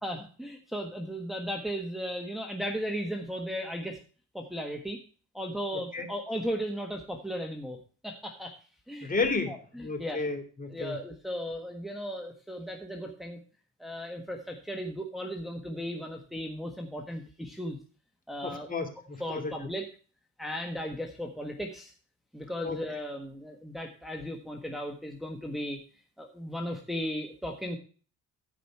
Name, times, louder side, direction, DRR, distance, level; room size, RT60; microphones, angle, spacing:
voice 1, 0.0-4.0 4.3-5.0 5.3-7.8 8.0-8.5 8.9-9.1 9.5-10.2 10.7-13.4 13.8-17.8 18.3-18.7 19.2-19.9 20.4-21.9 22.3-25.8 26.2-27.8, equal, ahead, 2 dB, 1.4 m, -36 dB
voice 2, 9.0-11.0 18.4-19.5 22.6-22.8, left 3 dB, 30° left, 4 dB, 2.6 m, -32 dB
14.5 x 5.1 x 4.6 m, 0.39 s
cardioid pair, 90°, 30 cm